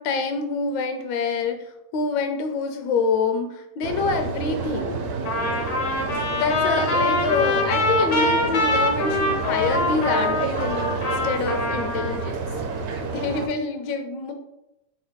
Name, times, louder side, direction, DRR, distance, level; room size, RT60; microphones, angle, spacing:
voice 1, 0.0-1.7 1.9-5.1 6.1-12.5 13.0-14.3, left 4 dB, 85° left, 5 dB, 1.4 m, -26 dB
sound 1, 3.8-13.5, right 4 dB, 65° right, 1.0 m, -29 dB
Trumpet, 5.3-12.3, left 2 dB, 55° left, 1.0 m, -24 dB
5.8 x 3.7 x 2.2 m, 0.88 s
omnidirectional pair, 1.9 m